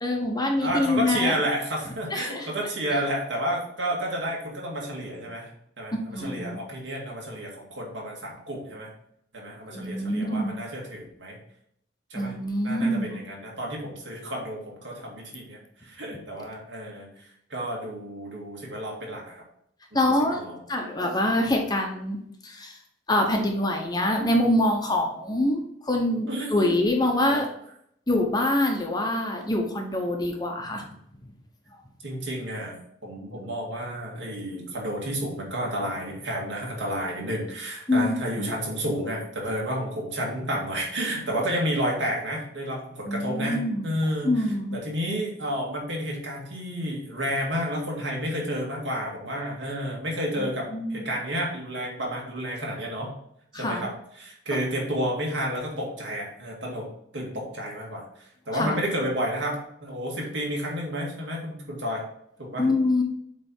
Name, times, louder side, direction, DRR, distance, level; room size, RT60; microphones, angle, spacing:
voice 1, 0.0-1.3 2.1-2.5 6.1-6.6 9.7-10.5 12.1-13.2 19.9-20.4 20.7-22.2 22.4-22.8 23.1-27.5 28.1-30.9 37.9-38.5 43.1-43.9 44.2-44.8 50.4-51.1 53.5-53.9 58.5-58.8 62.6-63.0, left 1 dB, 20° left, 2 dB, 0.9 m, -25 dB
voice 2, 0.6-5.5 5.8-8.9 9.3-11.4 12.1-12.3 12.6-19.4 19.9-20.0 20.3-20.6 26.3-26.7 27.3-27.4 32.0-32.8 33.0-43.6 43.8-53.1 53.5-56.9 57.1-62.0 62.4-62.7, equal, 75° right, -2 dB, 2.2 m, -31 dB
8.0 x 3.4 x 4.5 m, 0.72 s
head